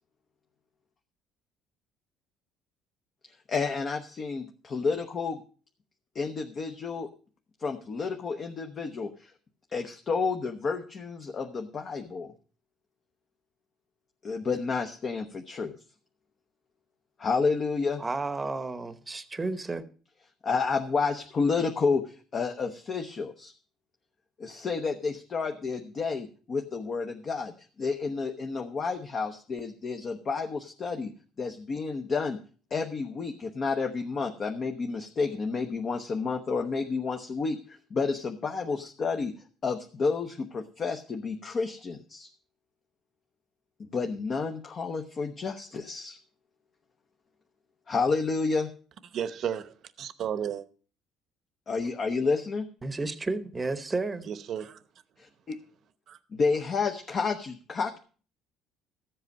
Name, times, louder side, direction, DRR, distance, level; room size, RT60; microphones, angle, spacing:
voice 1, 3.5-5.4 6.1-7.1 7.6-9.3 9.7-12.3 14.2-15.7 17.2-18.0 20.4-23.5 24.4-27.5 27.8-31.1 31.4-32.4 32.7-39.3 39.6-42.3 43.8-46.2 47.9-48.7 51.7-52.7 55.2-55.6 56.3-58.0, left 4 dB, 35° left, 0.9 m, -30 dB
voice 2, 18.0-19.9 52.8-54.3, right 3 dB, 15° right, 0.9 m, -32 dB
voice 3, 49.1-50.6 54.3-54.7 56.1-56.2, right 9 dB, 50° right, 0.8 m, -33 dB
13.5 x 7.9 x 5.3 m
cardioid pair, 130°, 0 cm